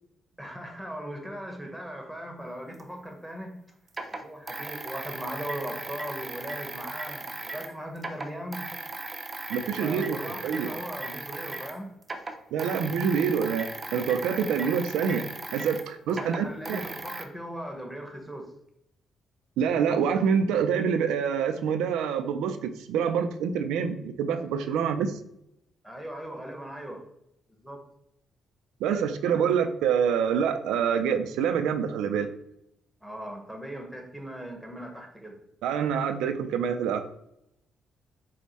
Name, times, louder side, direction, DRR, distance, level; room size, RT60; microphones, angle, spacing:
voice 1, 0.4-3.6 4.2-8.7 9.8-11.9 16.1-18.5 25.8-27.0 27.6-27.8 33.0-35.4, equal, ahead, 2 dB, 1.0 m, -38 dB
sound 1, 2.8-2.9 3.9-7.7 8.0-11.8 12.0-17.2, right 2 dB, 25° right, 0.5 m, -37 dB
voice 2, 9.5-10.7 12.5-16.9 19.6-25.1 28.8-32.3 35.6-37.1, right 7 dB, 90° right, 8 dB, 0.3 m, -26 dB
4.6 x 2.1 x 4.0 m, 0.79 s
cardioid pair, 90°, 0 cm